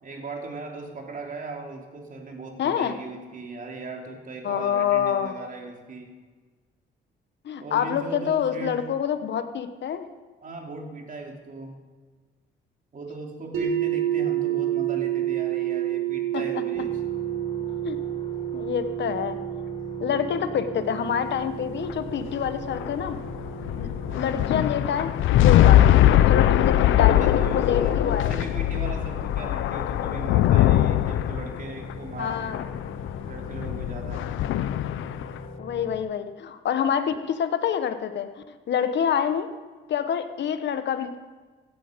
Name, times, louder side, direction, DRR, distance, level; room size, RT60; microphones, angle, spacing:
voice 1, 0.0-6.2 7.6-8.9 10.4-11.8 12.9-17.0 24.1-24.5 26.7-32.6 33.3-34.3, right 3 dB, 45° right, 2 dB, 3.1 m, -38 dB
voice 2, 2.6-2.9 4.4-5.3 7.4-10.0 16.3-16.4 17.8-18.0 18.5-19.4 20.0-23.2 23.8-23.9 24.1-25.1 25.4-28.4 32.2-32.6 35.6-38.3 38.7-39.5 39.9-41.2, left 8 dB, 65° left, 10 dB, 1.3 m, -27 dB
sound 1, 13.5-25.5, right 12 dB, 85° right, 3.6 m, -30 dB
sound 2, 16.7-36.0, left 3 dB, 30° left, 2.2 m, -41 dB
sound 3, 21.8-35.4, left 12 dB, 80° left, 0.6 m, -21 dB
16.5 x 11.5 x 5.2 m, 1.4 s
cardioid pair, 90°, 20 cm